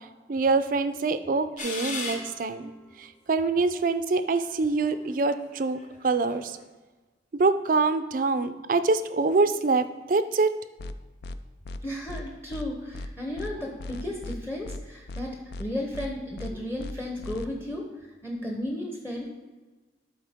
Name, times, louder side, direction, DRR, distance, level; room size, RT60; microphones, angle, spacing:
voice 1, 0.3-2.7 3.0-5.8 6.0-6.6 7.4-10.5, right 3 dB, 50° right, 11 dB, 0.4 m, -25 dB
sound 1, 1.6-2.7 3.4-3.5 4.3-6.7, left 3 dB, 45° left, 1.1 m, -38 dB
sound 2, 10.8-10.9 11.2-11.4 11.6-11.8 12.1-12.2 12.5-12.7 12.9-13.1 13.4-13.5 13.8-14.4 14.6-14.8 15.1-15.2 15.5-15.7 15.9-16.1 16.4-16.5 16.8-16.9 17.2-17.4, left 2 dB, 65° left, 0.4 m, -37 dB
voice 2, 11.8-17.9 18.2-19.3, left 1 dB, 15° left, 0 dB, 0.8 m, -34 dB
12.0 x 4.2 x 3.6 m, 1.2 s
head